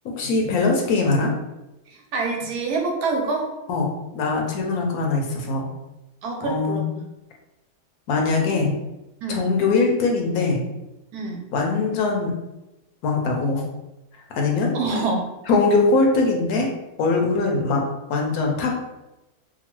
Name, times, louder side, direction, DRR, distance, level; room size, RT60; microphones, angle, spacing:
voice 1, 0.0-1.3 3.7-3.9 4.1-5.7 6.4-6.8 8.1-8.7 9.3-10.6 11.5-12.3 13.0-13.6 14.3-14.7 15.5-16.7 17.0-17.8 18.1-18.7, left 3 dB, 75° left, 0 dB, 1.0 m, -21 dB
voice 2, 2.1-3.5 6.2-7.0 9.2-9.5 11.1-11.4 14.7-15.3, right 3 dB, 75° right, 1 dB, 1.1 m, -26 dB
2.9 x 2.2 x 2.9 m, 0.97 s
omnidirectional pair, 1.7 m